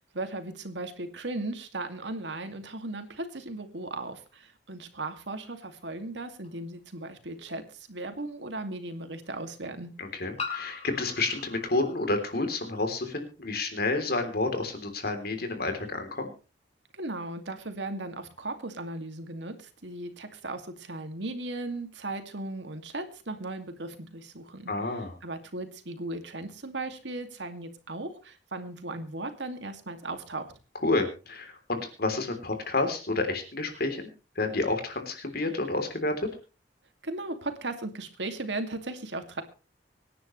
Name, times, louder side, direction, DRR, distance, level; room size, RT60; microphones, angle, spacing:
voice 1, 0.1-9.9 17.0-24.7 25.2-30.5 37.0-39.4, right 2 dB, 80° right, 7 dB, 2.4 m, -37 dB
sound 1, 6.4-6.5 8.2-8.3 10.4-12.9, left 5 dB, 35° left, 5.3 m, -40 dB
voice 2, 10.0-16.3 24.7-25.2 30.8-34.1 34.4-36.3, left 2 dB, 60° left, 6 dB, 3.5 m, -30 dB
25.0 x 10.0 x 3.2 m, 0.33 s
head